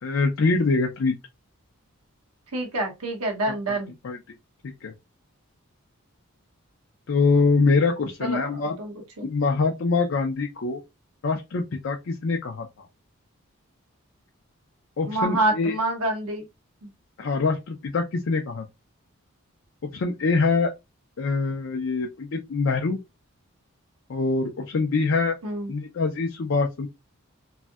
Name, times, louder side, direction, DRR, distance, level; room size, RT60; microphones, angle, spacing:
voice 1, 0.0-1.2 3.7-3.8 4.0-4.2 4.8-4.9 7.1-8.8 9.2-10.8 11.2-12.9 15.0-15.8 17.2-18.6 19.9-20.7 21.2-23.0 24.1-25.4 25.7-26.9, left 4 dB, 60° left, 0.4 m, -24 dB
voice 2, 2.5-3.9 8.2-9.3 15.0-16.5 16.8-16.9 25.4-25.7, right 2 dB, 80° right, 0.9 m, -27 dB
3.2 x 2.6 x 2.3 m
head